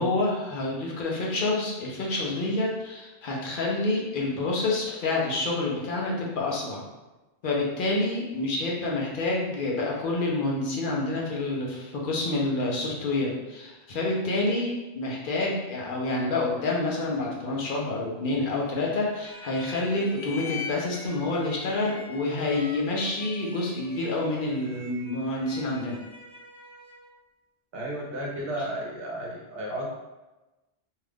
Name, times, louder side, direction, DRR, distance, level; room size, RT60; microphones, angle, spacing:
voice 1, 0.0-6.8 7.4-26.0, left 2 dB, 55° left, -3 dB, 0.8 m, -28 dB
sound 1, 19.0-27.2, left 3 dB, 25° left, 0.5 m, -43 dB
voice 2, 27.7-30.0, right 1 dB, 65° right, -3 dB, 0.9 m, -33 dB
2.8 x 2.4 x 3.4 m, 1.1 s
omnidirectional pair, 1.1 m